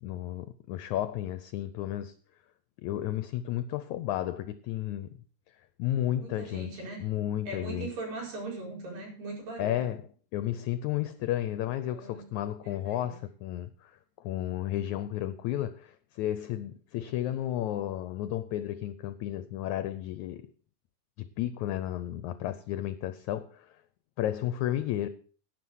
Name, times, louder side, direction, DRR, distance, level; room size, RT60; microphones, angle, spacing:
voice 1, 0.0-2.1 2.8-5.1 5.8-7.9 9.6-10.0 10.3-13.9 14.2-20.5 21.4-23.7 24.2-25.1, left 12 dB, 75° left, 1.8 m, -32 dB
voice 2, 6.2-7.0 7.5-9.9 11.8-12.3 12.6-13.1, right 3 dB, 80° right, 6.3 m, -40 dB
11.0 x 9.6 x 6.3 m
omnidirectional pair, 3.9 m